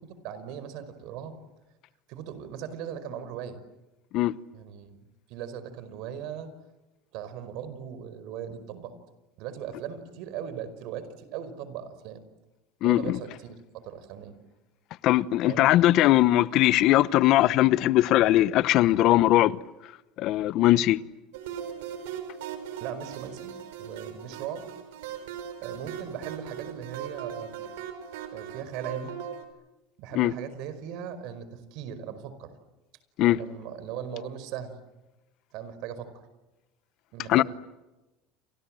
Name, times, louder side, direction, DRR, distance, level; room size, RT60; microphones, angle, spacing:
voice 1, 0.2-1.4 2.1-3.6 4.5-5.0 5.3-6.5 7.1-8.9 9.4-12.2 12.8-14.3 15.5-15.6 22.8-24.7 25.6-27.6 28.3-29.1 30.0-32.5 33.2-34.7 35.5-36.1 37.1-37.4, right 8 dB, 65° right, 5.1 m, -38 dB
voice 2, 12.8-13.2 15.0-19.6 20.2-21.0 30.2-30.3 33.2-33.4 37.3-37.4, left 15 dB, 55° left, 0.9 m, -20 dB
sound 1, 21.3-29.4, right 9 dB, 85° right, 5.0 m, -39 dB
29.5 x 26.0 x 7.7 m
supercardioid pair, 125°, 0 cm